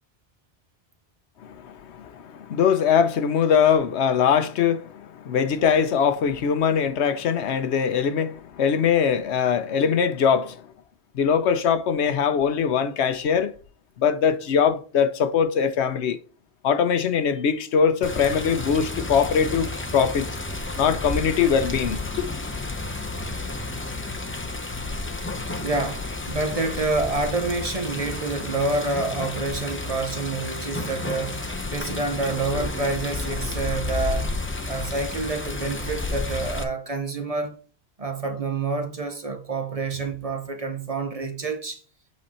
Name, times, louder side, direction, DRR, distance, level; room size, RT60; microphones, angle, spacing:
voice 1, 1.4-10.6 11.1-13.5 14.0-16.2 16.6-20.3 20.8-22.3, left 7 dB, 85° left, 1.0 m, -22 dB
Water, 18.0-36.6, left 2 dB, 15° left, 0.6 m, -31 dB
voice 2, 25.6-34.4 34.7-37.6 38.0-41.8, right 3 dB, 35° right, 0.9 m, -28 dB
8.2 x 4.1 x 4.2 m
omnidirectional pair, 1.1 m